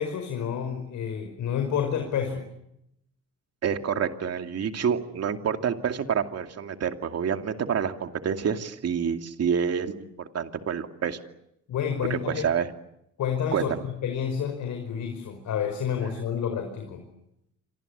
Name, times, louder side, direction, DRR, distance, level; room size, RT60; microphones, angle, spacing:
voice 1, 0.0-2.4 11.7-12.5 13.2-17.1, left 8 dB, 75° left, 5 dB, 5.2 m, -29 dB
voice 2, 3.6-11.2 12.1-12.7 13.5-13.9, right 7 dB, 55° right, 6 dB, 2.6 m, -28 dB
28.0 x 26.0 x 8.2 m, 0.79 s
cardioid pair, 90°, 30 cm